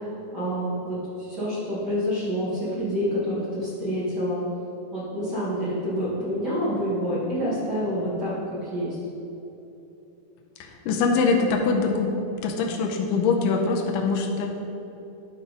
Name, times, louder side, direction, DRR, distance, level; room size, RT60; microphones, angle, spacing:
voice 1, 0.3-4.4 4.9-8.3 8.6-8.9, equal, 65° right, -9 dB, 1.0 m, -27 dB
voice 2, 10.6-12.1 12.4-14.5, left 4 dB, 85° left, 1 dB, 1.9 m, -23 dB
12.0 x 4.1 x 4.9 m, 3.0 s
omnidirectional pair, 4.6 m